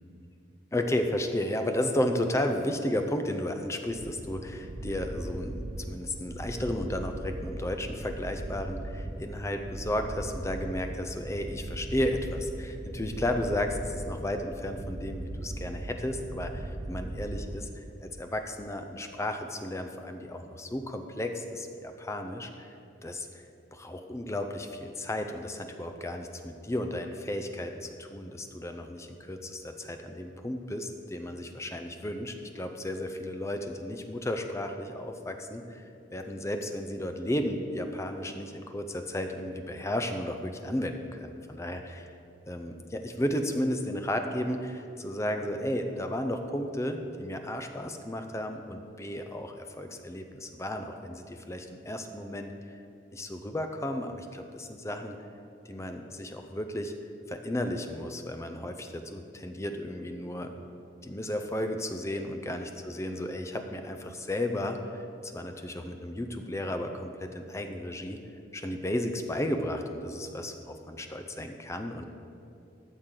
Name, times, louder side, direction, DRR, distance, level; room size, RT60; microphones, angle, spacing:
voice 1, 0.7-17.7 18.0-22.5 23.0-23.3 23.7-35.8 36.1-42.1 42.5-52.5 53.1-55.2 55.7-56.9 57.3-60.5 61.0-68.2 68.5-72.1, left 1 dB, 15° left, 6 dB, 0.5 m, -33 dB
sound 1, 3.9-18.1, right 1 dB, 40° right, 0.5 m, -39 dB
13.0 x 6.5 x 3.8 m, 2.6 s
head